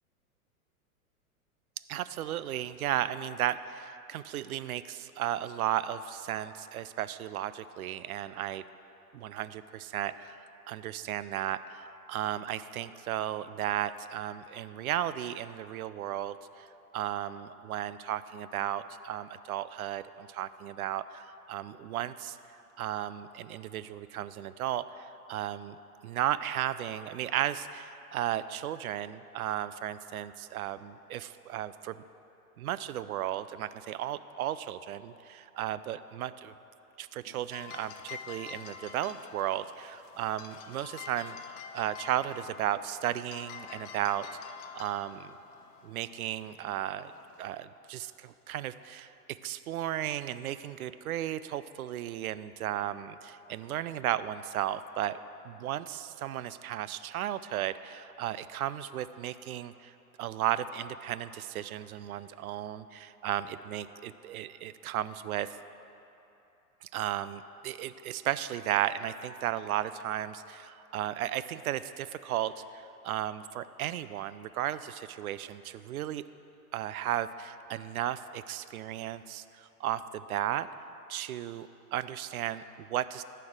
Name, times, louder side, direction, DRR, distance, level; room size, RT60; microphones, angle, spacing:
voice 1, 1.9-8.6 9.1-16.7 16.9-22.4 22.8-25.8 26.0-32.0 32.6-36.5 37.0-44.3 44.7-45.3 45.8-47.1 47.4-55.2 55.4-59.9 60.2-65.6 66.8-76.2 76.7-80.7 81.1-83.2, right 12 dB, 70° right, 14 dB, 0.5 m, -34 dB
sound 1, 37.2-47.6, left 8 dB, 35° left, 0.6 m, -48 dB
13.0 x 4.6 x 6.2 m, 2.9 s
hypercardioid pair, 110°, 45 cm